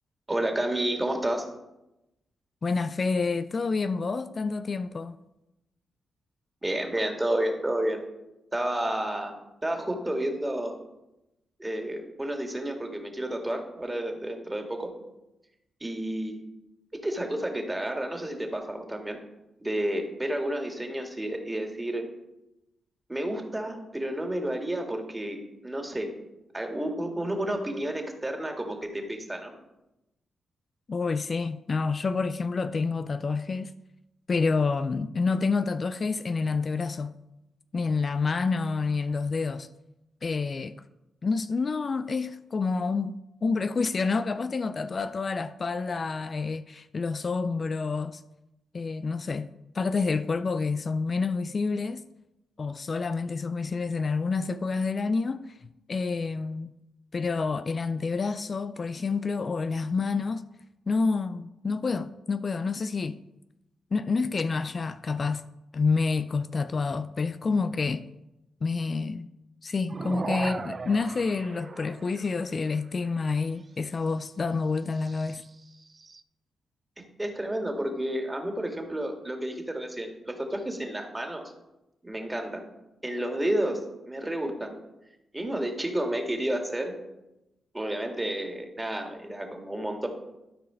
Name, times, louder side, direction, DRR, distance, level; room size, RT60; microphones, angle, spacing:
voice 1, 0.3-1.4 6.6-8.0 8.5-9.3 9.6-10.8 11.6-14.9 15.8-16.4 17.0-19.2 19.6-22.0 23.1-26.1 26.5-29.5 77.0-81.4 82.0-82.7 83.0-83.8 84.1-84.7 85.3-86.9 87.7-90.1, right 1 dB, 20° right, 2.2 m, -31 dB
voice 2, 2.6-5.2 30.9-33.7 34.3-37.1 37.7-39.7 40.2-40.7 41.2-48.2 48.7-49.5 49.7-52.0 52.6-55.5 55.9-56.7 57.1-60.4 60.9-63.2 63.9-65.4 65.7-68.0 68.6-69.3 69.6-75.4, left 4 dB, 50° left, 0.4 m, -28 dB
sound 1, 69.9-72.6 75.0-76.2, right 4 dB, 45° right, 0.5 m, -37 dB
12.5 x 4.7 x 5.1 m
supercardioid pair, 45°, 0 cm